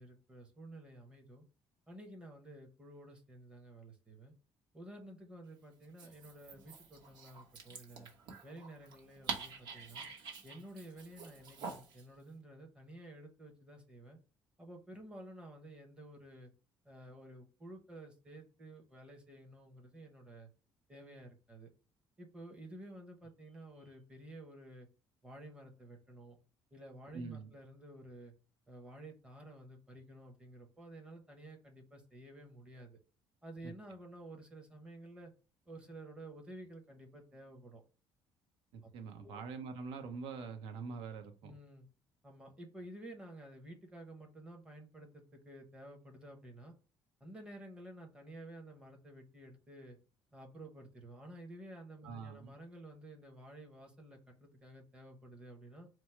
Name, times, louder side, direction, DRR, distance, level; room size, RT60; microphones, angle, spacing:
voice 1, 0.0-1.4 1.9-4.3 4.7-8.1 8.4-10.0 10.4-14.2 14.6-16.5 16.8-20.5 20.9-21.7 22.2-24.9 25.2-26.4 26.7-28.3 28.7-33.0 33.4-35.3 35.7-37.8 38.8-38.9 39.2-39.4 41.4-41.9 42.2-46.7 47.2-50.0 50.3-55.9, right 1 dB, 10° right, 0.8 m, -52 dB
Dog, 5.8-12.1, right 5 dB, 50° right, 0.9 m, -47 dB
voice 2, 27.1-27.5 33.6-33.7 38.7-41.5 52.0-52.5, right 5 dB, 80° right, 0.7 m, -44 dB
4.5 x 2.0 x 4.3 m
cardioid pair, 155°, 9 cm